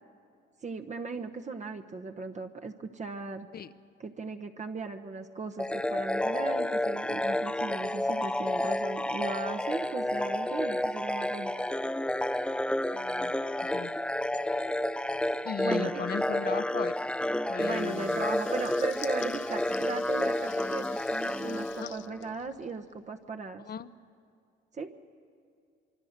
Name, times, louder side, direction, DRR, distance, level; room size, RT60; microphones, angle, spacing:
voice 1, 0.6-3.5 4.0-11.5 15.6-16.0 17.6-23.6 24.7-24.9, right 4 dB, 35° right, 4 dB, 1.1 m, -37 dB
sound 1, 5.6-22.3, left 1 dB, 5° left, 0.5 m, -30 dB
voice 2, 12.9-13.3 13.6-13.9 15.4-17.0 17.5-18.3 21.8-21.9 22.4-22.5 23.7-23.9, left 8 dB, 50° left, 15 dB, 0.9 m, -37 dB
Water tap faucet / Liquid, 17.5-23.0, left 12 dB, 75° left, 0.8 m, -49 dB
25.0 x 25.0 x 6.7 m, 2.3 s
cardioid pair, 90°, 20 cm